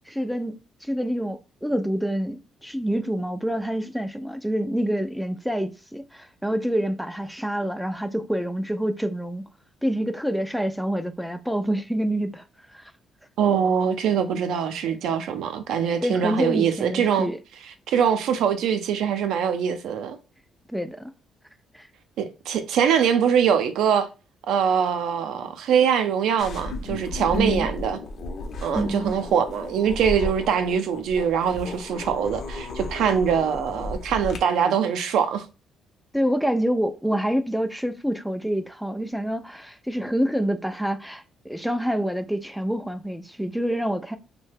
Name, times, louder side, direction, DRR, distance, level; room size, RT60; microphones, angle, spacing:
voice 1, 0.1-9.4 9.8-12.4 12.7-12.9 16.0-17.4 20.7-21.1 21.7-21.9 27.3-27.7 28.7-29.2 36.1-44.2, equal, ahead, 0.3 m, -27 dB
voice 2, 13.4-17.3 17.9-20.2 22.2-24.1 24.5-28.0 28.6-35.5, right 7 dB, 75° right, 0.5 m, -23 dB
sound 1, 26.4-34.4, left 2 dB, 50° left, 0.7 m, -34 dB
3.1 x 2.2 x 3.3 m
cardioid pair, 135°, 0 cm